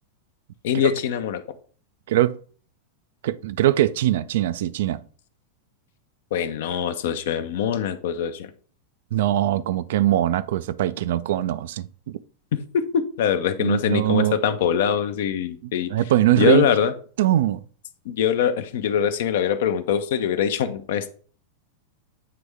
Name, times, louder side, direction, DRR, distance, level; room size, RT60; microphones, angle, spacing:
voice 1, 0.6-1.4 6.3-8.5 12.5-12.6 12.9-15.9 16.4-16.9 18.1-21.1, left 8 dB, 55° left, 0.6 m, -23 dB
voice 2, 3.2-5.0 9.1-12.2 13.6-14.3 15.6-16.7 17.2-17.6, right 13 dB, 55° right, 0.3 m, -22 dB
8.5 x 3.5 x 3.3 m
figure-of-eight pair, 90°, 0 cm